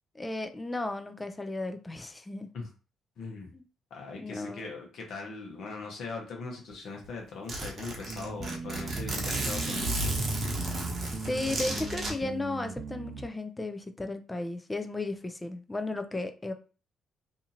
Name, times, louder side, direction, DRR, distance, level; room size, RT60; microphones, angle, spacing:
voice 1, 0.1-2.5 3.5-3.6 4.2-4.7 11.2-16.5, left 2 dB, 20° left, 7 dB, 0.5 m, -34 dB
voice 2, 3.2-3.5 3.9-10.0, left 4 dB, 65° left, 0 dB, 0.9 m, -40 dB
Zipper (clothing), 6.7-6.8 7.0-7.1 7.5-12.1, right 2 dB, 50° right, 1.0 m, -33 dB
sound 1, 8.1-13.3, right 3 dB, 30° right, 0.7 m, -39 dB
2.8 x 2.4 x 2.8 m, 0.35 s
hypercardioid pair, 50°, 0 cm